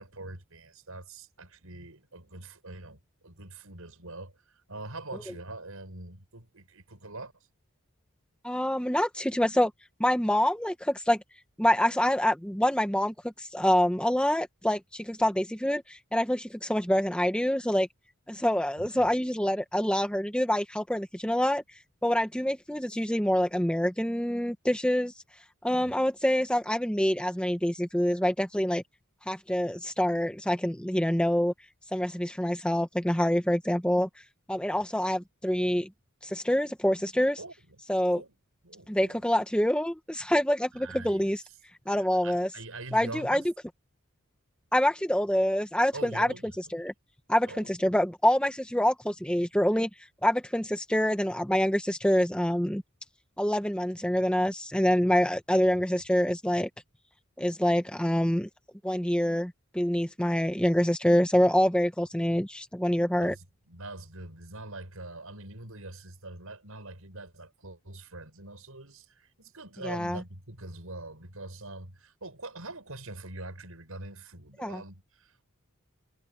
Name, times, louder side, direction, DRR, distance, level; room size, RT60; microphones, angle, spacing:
voice 1, 0.0-7.3 18.8-19.1 25.7-26.0 34.7-34.8 37.4-37.8 38.2-38.3 38.6-39.2 40.7-41.3 41.9-43.5 45.9-46.5 47.5-47.7 55.7-55.9 63.2-75.4, right 2 dB, 75° right, 6.1 m, -44 dB
voice 2, 8.4-9.7 10.0-11.2 11.6-17.9 18.3-21.6 22.0-25.1 25.6-28.8 29.3-31.5 31.9-34.1 34.5-35.9 36.2-37.4 37.9-38.2 38.9-41.4 41.9-42.5 42.9-43.4 44.7-46.3 46.7-46.9 47.3-49.9 50.2-52.8 53.4-56.7 57.4-58.5 58.8-63.3 69.8-70.2 74.6-74.8, equal, 5° left, 1.3 m, -26 dB
head